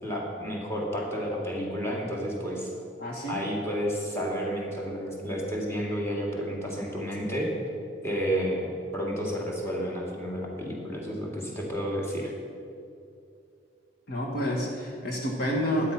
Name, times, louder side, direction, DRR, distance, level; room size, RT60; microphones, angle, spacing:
voice 1, 0.0-2.7 3.3-7.5 8.0-12.3, equal, 15° left, -2 dB, 2.4 m, -31 dB
voice 2, 3.0-3.4 14.1-15.9, equal, 55° left, -1 dB, 1.7 m, -29 dB
12.5 x 10.0 x 5.9 m, 2.5 s
head